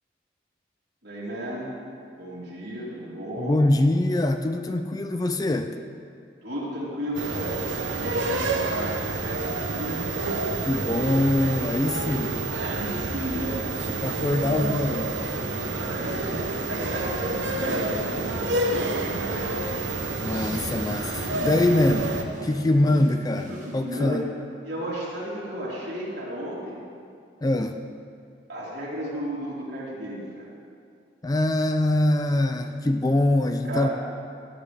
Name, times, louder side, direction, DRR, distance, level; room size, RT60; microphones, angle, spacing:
voice 1, 1.0-1.7 2.1-3.6 6.4-10.0 10.6-11.2 11.9-14.8 15.7-19.7 23.5-24.2 24.6-26.8 28.5-30.5 33.6-33.9, right 1 dB, 65° right, -7 dB, 3.5 m, -34 dB
voice 2, 3.4-5.8 10.6-12.3 14.0-15.2 20.2-22.1 22.4-24.3 27.4-27.8 31.2-33.9, left 1 dB, 20° left, 7 dB, 0.4 m, -23 dB
sound 1, 7.1-22.2, right 2 dB, 80° right, 1.0 m, -29 dB
sound 2, 15.4-24.2, equal, 45° right, 1.2 m, -42 dB
17.0 x 9.8 x 3.4 m, 2.3 s
head